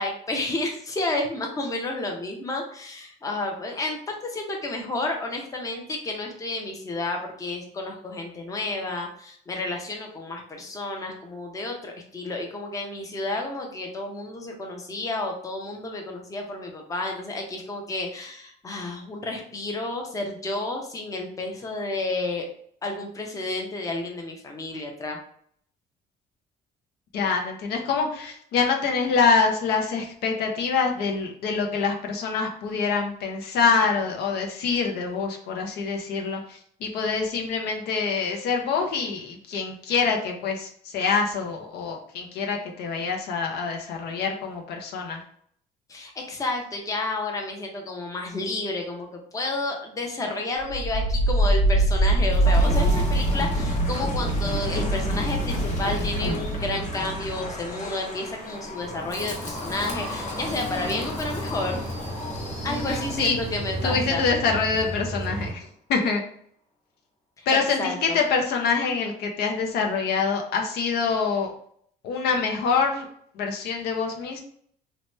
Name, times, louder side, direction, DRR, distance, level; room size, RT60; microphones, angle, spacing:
voice 1, 0.0-22.5 22.8-25.2 45.9-61.8 62.6-64.2 67.4-68.2, left 2 dB, 20° left, 2 dB, 0.6 m, -31 dB
voice 2, 27.1-45.2 62.7-63.4 63.8-66.2 67.5-71.5 72.0-73.1 73.3-74.4, left 5 dB, 75° left, 2 dB, 0.6 m, -25 dB
Wind, 50.6-63.6, right 1 dB, 45° left, 0.8 m, -26 dB
sound 1, 58.8-65.5, right 1 dB, 35° right, 0.6 m, -35 dB
2.8 x 2.2 x 3.1 m, 0.62 s
cardioid pair, 110°, 17 cm